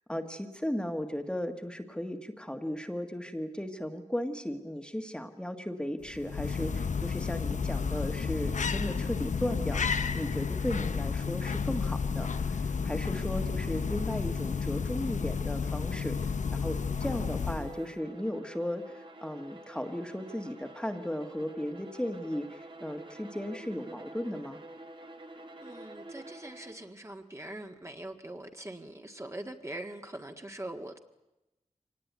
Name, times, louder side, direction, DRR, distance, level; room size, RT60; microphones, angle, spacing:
voice 1, 0.1-24.6, equal, 5° left, 5 dB, 1.6 m, -36 dB
sound 1, 6.0-17.9, left 5 dB, 90° left, 0.8 m, -31 dB
Bowed string instrument, 17.4-26.9, right 1 dB, 40° right, 1.8 m, -48 dB
voice 2, 25.6-31.0, right 1 dB, 25° right, 4 dB, 1.7 m, -42 dB
24.5 x 19.0 x 9.4 m, 0.98 s
wide cardioid pair, 85°, 12 cm